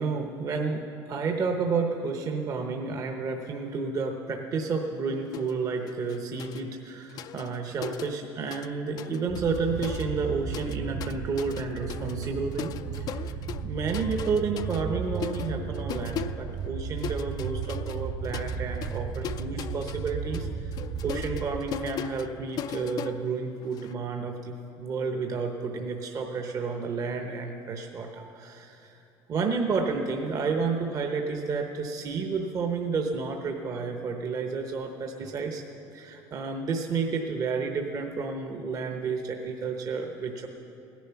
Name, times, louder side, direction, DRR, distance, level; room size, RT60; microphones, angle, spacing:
voice 1, 0.0-13.3 13.6-20.7 21.0-29.0 29.3-35.6 35.9-40.5, right 4 dB, 40° right, 3 dB, 0.9 m, -31 dB
sound 1, 5.3-5.6 5.9-8.7 9.0-23.9, left 9 dB, 45° left, 0.4 m, -40 dB
sound 2, 9.3-21.6, right 6 dB, 55° right, 1.9 m, -35 dB
16.5 x 10.5 x 5.8 m, 2.8 s
cardioid pair, 120°, 9 cm